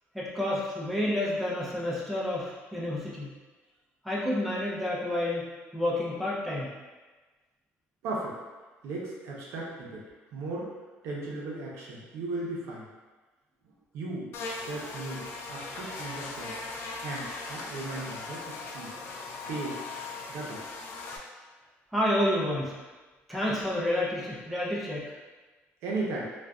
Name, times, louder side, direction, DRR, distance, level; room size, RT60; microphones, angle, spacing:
voice 1, 0.1-3.3 4.0-6.7 21.9-22.8 23.3-25.1, left 1 dB, ahead, -7 dB, 0.4 m, -29 dB
voice 2, 8.0-8.3 8.8-10.0 10.3-10.7 11.0-12.9 13.9-14.3 14.6-15.2 15.5-16.5 17.0-18.9 19.5-19.8 20.3-20.6 25.8-26.2, right 2 dB, 75° right, -4 dB, 0.6 m, -36 dB
Buzz, 14.3-21.2, left 3 dB, 60° left, 0.3 m, -39 dB
2.5 x 2.1 x 2.3 m, 1.3 s
cardioid pair, 155°, 5 cm